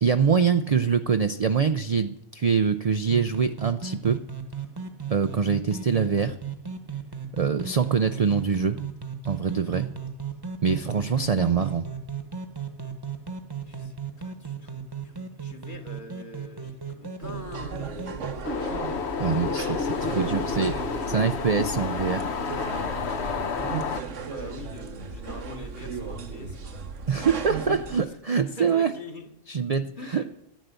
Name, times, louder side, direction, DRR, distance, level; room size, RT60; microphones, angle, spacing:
voice 1, 0.0-4.2 5.1-6.4 7.3-8.8 9.2-9.9 10.6-11.9 19.2-22.3 27.1-28.9 29.5-30.2, right 6 dB, 50° right, 10 dB, 0.4 m, -24 dB
sound 1, 3.0-18.3, right 6 dB, 20° right, 1.1 m, -36 dB
voice 2, 13.6-18.3 23.3-29.3 30.0-30.3, left 2 dB, 45° left, 4 dB, 1.8 m, -44 dB
sound 2, 17.2-28.0, right 5 dB, 75° right, 1.4 m, -36 dB
sound 3, 18.4-24.0, left 5 dB, 60° left, 1.1 m, -30 dB
11.0 x 10.5 x 8.0 m, 0.78 s
omnidirectional pair, 1.3 m